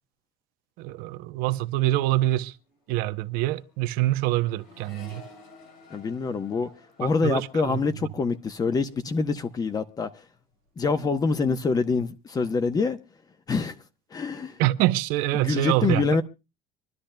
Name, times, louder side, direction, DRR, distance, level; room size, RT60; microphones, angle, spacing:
voice 1, 0.8-2.6 2.9-5.2 7.2-7.8 14.6-16.1, right 16 dB, 75° right, 0.7 m, -25 dB
Accelerating revving vroom, 2.4-9.9 10.2-10.8, left 3 dB, 85° left, 4.2 m, -54 dB
voice 2, 5.9-6.7 7.0-10.1 10.8-13.0 13.5-13.7 14.1-14.6 15.3-16.2, left 4 dB, 25° left, 0.9 m, -25 dB
25.5 x 11.5 x 2.2 m
cardioid pair, 130°, 15 cm